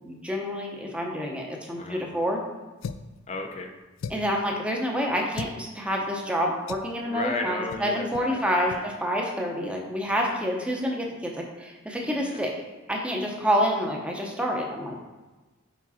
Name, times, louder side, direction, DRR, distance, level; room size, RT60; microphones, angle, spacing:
voice 1, 0.0-2.4 4.1-12.5 12.9-15.0, equal, 5° right, 0 dB, 0.8 m, -28 dB
sound 1, 2.8-3.2 4.0-4.4 5.3-5.6 6.7-6.9 7.7-7.9 8.1-8.3 8.7-8.8, left 5 dB, 75° left, 0.3 m, -37 dB
voice 2, 3.3-3.7 7.0-8.9 10.0-10.6 12.1-12.4, left 2 dB, 35° left, 4 dB, 0.6 m, -35 dB
5.0 x 4.6 x 4.2 m, 1.2 s
head